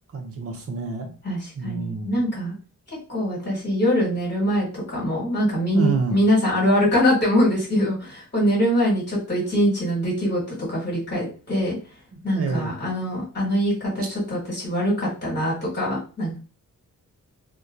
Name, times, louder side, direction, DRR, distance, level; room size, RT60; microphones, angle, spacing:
voice 1, 0.1-1.1 1.6-2.2 5.7-6.2 12.1-12.8 14.0-14.1, right 4 dB, 45° right, 3 dB, 0.6 m, -28 dB
voice 2, 1.2-2.5 3.1-11.8 12.2-16.4, equal, 30° left, -6 dB, 1.4 m, -23 dB
2.8 x 2.2 x 2.4 m, 0.36 s
wide cardioid pair, 120°, 33 cm